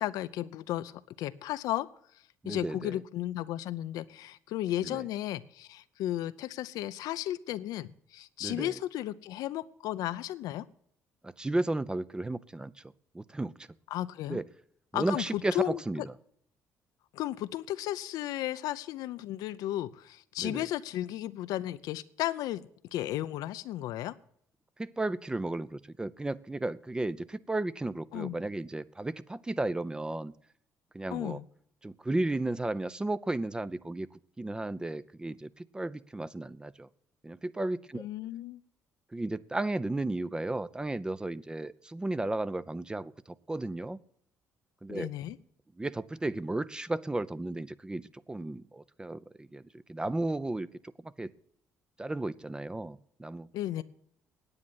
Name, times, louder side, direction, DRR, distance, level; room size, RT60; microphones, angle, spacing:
voice 1, 0.0-1.9 2.5-10.7 13.9-14.4 14.9-15.8 17.1-22.6 22.9-24.2 28.1-28.4 31.1-31.5 37.9-38.6 44.9-45.4 53.5-53.8, left 13 dB, 80° left, 13 dB, 0.6 m, -34 dB
voice 2, 2.4-3.0 4.8-5.0 8.4-8.8 11.2-12.7 13.1-13.7 14.3-14.4 14.9-16.0 20.4-20.7 24.8-30.3 30.9-31.4 31.8-34.1 34.4-36.9 37.2-38.1 39.1-43.1 43.5-44.0 44.8-45.1 45.8-49.6 49.9-50.7 51.0-51.3 52.0-53.5, right 2 dB, 15° right, 16 dB, 0.6 m, -34 dB
9.7 x 8.6 x 9.4 m, 0.68 s
cardioid pair, 100°, 6 cm